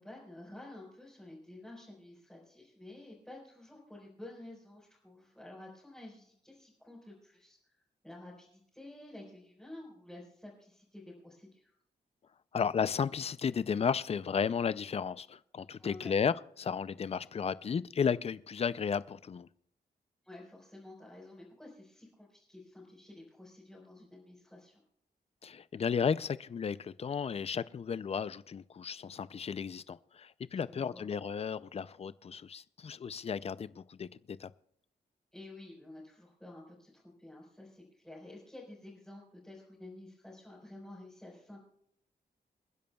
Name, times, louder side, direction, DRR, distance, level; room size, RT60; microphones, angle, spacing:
voice 1, 0.0-7.6 8.0-11.7 15.8-16.2 20.2-24.8 30.6-31.1 35.3-41.6, left 1 dB, 5° left, 4.4 m, -51 dB
voice 2, 12.5-19.5 25.4-34.5, left 6 dB, 40° left, 0.4 m, -34 dB
28.5 x 10.5 x 2.3 m
wide cardioid pair, 155°, 17 cm